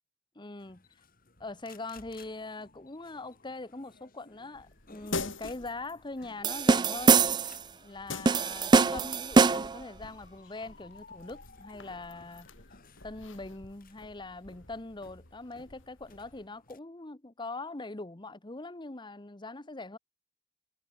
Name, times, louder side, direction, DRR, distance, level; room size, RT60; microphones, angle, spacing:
voice 1, 0.3-0.8 1.4-7.5 7.8-12.5 13.0-20.0, left 2 dB, 25° left, 1.1 m, -42 dB
sound 1, 0.6-16.8, left 4 dB, 50° left, 7.1 m, -58 dB
sound 2, 4.5-16.5, left 3 dB, 80° left, 4.8 m, -45 dB
sound 3, 6.4-7.6 8.3-9.8, right 4 dB, 25° right, 0.4 m, -23 dB
head